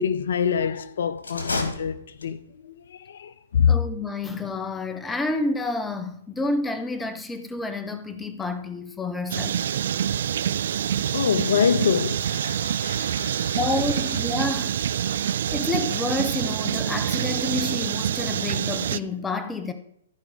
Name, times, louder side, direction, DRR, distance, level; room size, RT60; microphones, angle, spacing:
voice 1, 0.0-3.7 11.1-13.6, left 7 dB, 70° left, 0.6 m, -25 dB
sound 1, 1.2-2.6, left 3 dB, 85° left, 2.0 m, -31 dB
voice 2, 3.7-9.6 13.5-14.8 15.5-19.7, left 2 dB, 10° left, 1.0 m, -29 dB
sound 2, 9.3-19.0, right 9 dB, 65° right, 0.4 m, -26 dB
15.0 x 5.1 x 5.0 m
hypercardioid pair, 130°, 0 cm